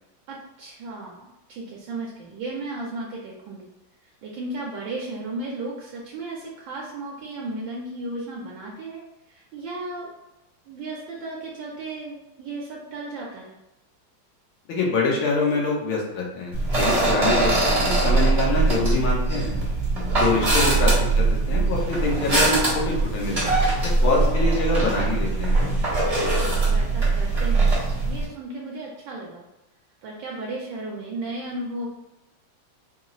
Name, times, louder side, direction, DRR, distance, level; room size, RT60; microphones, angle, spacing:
voice 1, 0.3-3.7 4.2-9.0 9.3-10.1 10.7-13.6 26.0-29.4 30.0-31.9, right 2 dB, 75° right, -3 dB, 1.3 m, -35 dB
voice 2, 14.7-19.5 20.1-23.4 23.8-25.6, left 3 dB, 75° left, -2 dB, 1.7 m, -25 dB
sound 1, 16.5-28.3, right 2 dB, 30° right, 0.8 m, -21 dB
4.3 x 2.0 x 3.8 m, 0.95 s
omnidirectional pair, 2.3 m